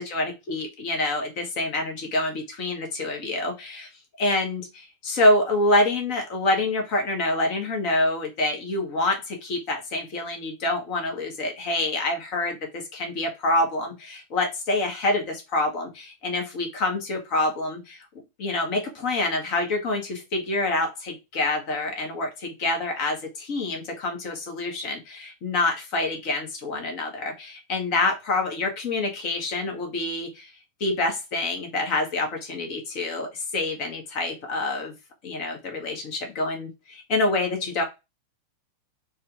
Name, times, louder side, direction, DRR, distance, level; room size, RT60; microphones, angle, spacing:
voice 1, 0.0-3.9 4.2-18.0 18.4-30.5 30.8-34.9 35.2-37.8, left 2 dB, 45° left, 3 dB, 1.4 m, -26 dB
4.2 x 2.6 x 3.4 m, 0.24 s
figure-of-eight pair, 90°, 0 cm